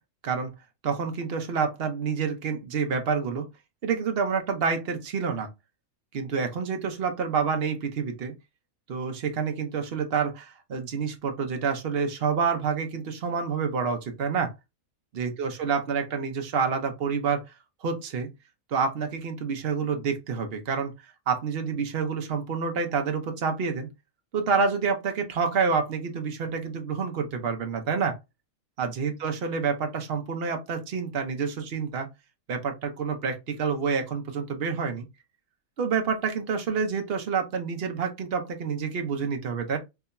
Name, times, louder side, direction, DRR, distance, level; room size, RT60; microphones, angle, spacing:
voice 1, 0.8-3.5 3.8-5.5 6.1-8.3 8.9-14.5 15.1-17.4 17.8-18.3 18.7-20.9 21.3-23.9 24.3-28.2 28.8-32.1 32.5-35.0 35.8-39.8, right 5 dB, 50° right, 1.0 m, -28 dB
4.7 x 2.7 x 2.2 m
omnidirectional pair, 1.5 m